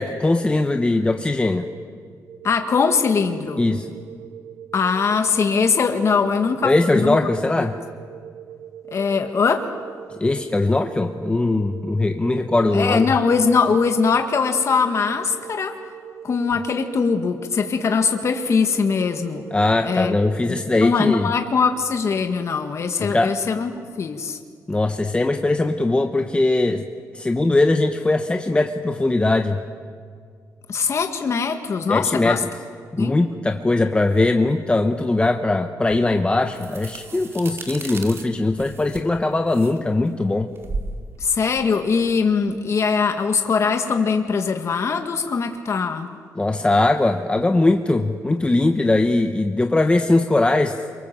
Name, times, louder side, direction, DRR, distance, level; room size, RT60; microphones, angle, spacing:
voice 1, 0.0-1.7 3.6-3.9 6.6-7.8 10.2-13.1 19.5-21.3 23.0-23.3 24.7-26.8 27.1-29.6 31.9-32.4 32.9-40.5 46.3-50.8, left 2 dB, 15° left, 5 dB, 1.2 m, -20 dB
sound 1, 2.3-21.4, right 10 dB, 75° right, 2.9 m, -41 dB
voice 2, 2.4-3.6 4.7-7.2 7.6-7.7 8.9-9.7 12.7-15.8 16.2-19.4 19.8-20.2 20.5-23.7 24.0-24.4 30.7-32.4 33.0-33.1 41.2-46.2, left 5 dB, 45° left, 5 dB, 1.8 m, -21 dB
sound 2, 35.9-42.7, right 3 dB, 40° right, 2.5 m, -36 dB
27.5 x 24.0 x 7.6 m, 2.1 s
cardioid pair, 100°, 6 cm